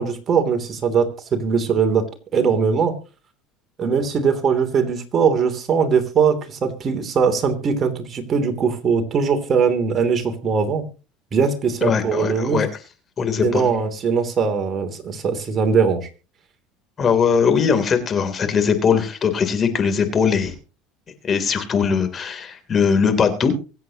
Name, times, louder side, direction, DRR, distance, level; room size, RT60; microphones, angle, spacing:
voice 1, 0.0-2.0 2.3-2.9 3.8-10.8 11.3-12.6 13.4-16.1, right 6 dB, 35° right, 6 dB, 3.0 m, -20 dB
voice 2, 11.8-12.7 13.2-13.6 17.0-20.5 21.2-23.5, left 6 dB, 35° left, 8 dB, 3.2 m, -20 dB
24.5 x 8.4 x 2.9 m, 0.33 s
supercardioid pair, 95°, 0 cm